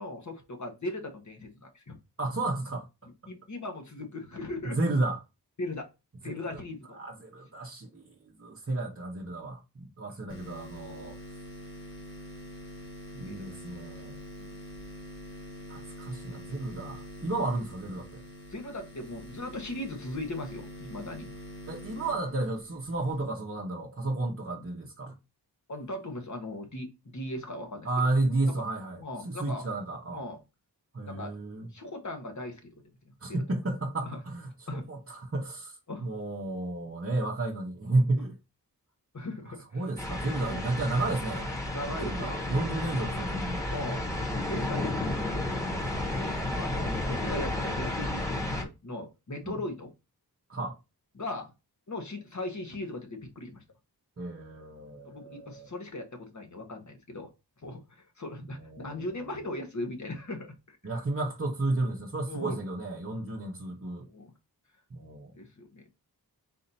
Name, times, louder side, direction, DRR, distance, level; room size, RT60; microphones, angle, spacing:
voice 1, 0.0-2.0 3.3-4.9 5.6-5.9 6.2-7.0 13.3-13.4 14.4-14.5 18.5-21.3 25.7-28.1 28.6-28.7 29.0-29.7 30.1-30.4 31.1-31.4 31.7-32.7 33.0-33.4 34.0-34.2 34.7-34.9 35.9-36.1 39.1-39.9 40.4-40.6 41.7-42.3 43.7-44.1 44.5-45.4 46.1-49.9 51.1-51.5 51.9-53.6 55.0-57.3 57.6-60.8 62.3-62.6 64.1-64.3 65.3-65.9, left 1 dB, 45° left, 1.3 m, -38 dB
voice 2, 2.2-2.9 4.8-5.2 6.5-6.6 7.0-8.1 8.4-11.2 13.1-14.2 15.7-18.2 21.7-25.2 27.8-30.2 30.9-31.7 33.2-35.7 36.0-38.3 39.7-41.5 41.9-44.0 44.7-44.9 46.8-47.0 49.4-49.6 50.5-50.8 54.2-55.7 58.6-59.1 60.8-64.1 64.9-65.3, right 2 dB, 35° right, 0.8 m, -32 dB
sound 1, 10.3-23.2, equal, 30° left, 1.6 m, -45 dB
sound 2, 40.0-48.6, left 1 dB, 10° left, 1.3 m, -32 dB
4.2 x 2.7 x 4.1 m
wide cardioid pair, 90°, 39 cm